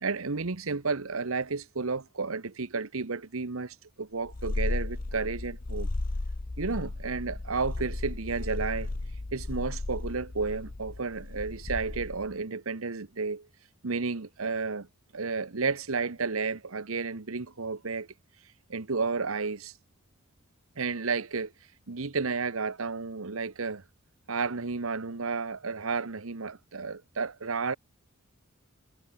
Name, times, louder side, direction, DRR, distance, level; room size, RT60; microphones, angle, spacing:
voice 1, 0.0-5.9 6.6-8.9 9.3-13.5 13.8-14.9 15.1-18.1 18.7-19.7 20.8-21.5 21.9-23.8 24.3-27.7, right 4 dB, 80° right, 1.1 m, -32 dB
Purr, 4.3-12.3, left 2 dB, 40° left, 0.8 m, -35 dB
head